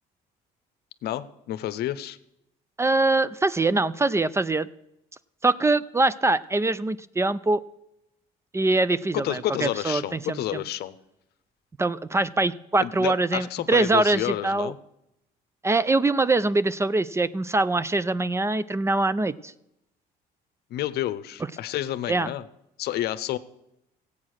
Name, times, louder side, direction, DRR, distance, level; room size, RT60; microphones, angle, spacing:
voice 1, 1.0-2.2 9.1-10.9 12.8-14.8 20.7-22.4 22.8-23.4, left 13 dB, 70° left, 14 dB, 0.7 m, -30 dB
voice 2, 2.8-4.7 5.4-7.6 8.5-10.6 11.8-14.7 15.6-19.5 22.1-22.3, right 2 dB, 15° right, 17 dB, 0.4 m, -23 dB
15.0 x 8.4 x 6.4 m, 0.85 s
cardioid pair, 110°, 17 cm